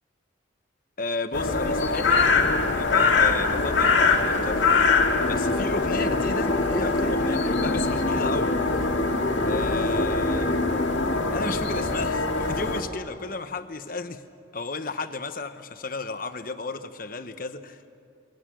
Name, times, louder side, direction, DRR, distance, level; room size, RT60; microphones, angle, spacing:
voice 1, 1.0-4.6 5.3-8.6 9.4-10.6 11.3-14.2 14.5-17.8, left 3 dB, 45° left, 9 dB, 1.1 m, -33 dB
sound 1, 1.3-12.8, left 3 dB, 75° left, 2.2 m, -23 dB
sound 2, 5.2-11.2, left 2 dB, 30° left, 0.6 m, -29 dB
28.5 x 23.0 x 6.3 m, 2.4 s
head